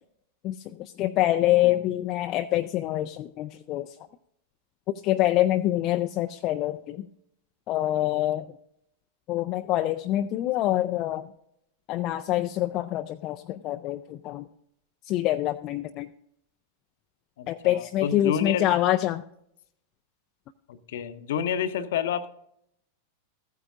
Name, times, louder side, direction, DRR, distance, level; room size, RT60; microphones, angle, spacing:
voice 1, 0.4-3.9 5.0-7.1 7.7-8.5 9.3-11.3 11.9-14.5 15.1-16.1 17.5-19.2, left 14 dB, 35° left, 6 dB, 0.4 m, -26 dB
voice 2, 17.4-18.7 20.7-22.3, left 8 dB, 55° left, 12 dB, 0.8 m, -29 dB
15.0 x 9.3 x 2.5 m, 0.74 s
figure-of-eight pair, 90°, 0 cm